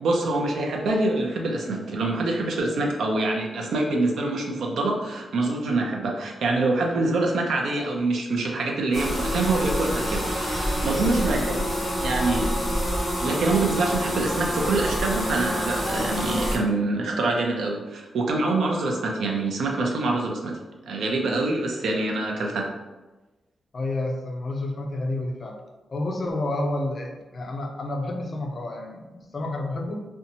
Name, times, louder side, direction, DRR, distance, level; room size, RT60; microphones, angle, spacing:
voice 1, 0.0-12.5 13.2-20.5 20.8-22.8, right 2 dB, 80° right, 0 dB, 0.5 m, -25 dB
sound 1, 8.9-16.6, equal, 10° left, 0.8 m, -27 dB
voice 2, 23.7-25.6 25.9-30.0, left 2 dB, 40° left, 2 dB, 0.4 m, -30 dB
2.6 x 2.2 x 2.8 m, 1.1 s
wide cardioid pair, 125°, 0 cm